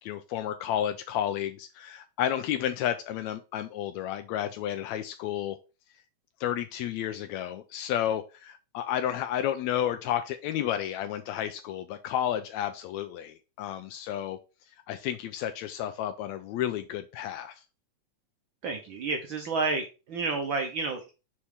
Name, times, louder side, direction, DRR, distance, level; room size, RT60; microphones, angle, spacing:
voice 1, 0.0-5.6 6.4-14.4 14.9-17.6, left 10 dB, 80° left, 9 dB, 1.8 m, -31 dB
voice 2, 18.6-21.1, right 3 dB, 75° right, 4 dB, 1.1 m, -30 dB
5.8 x 4.3 x 4.8 m, 0.30 s
omnidirectional pair, 3.3 m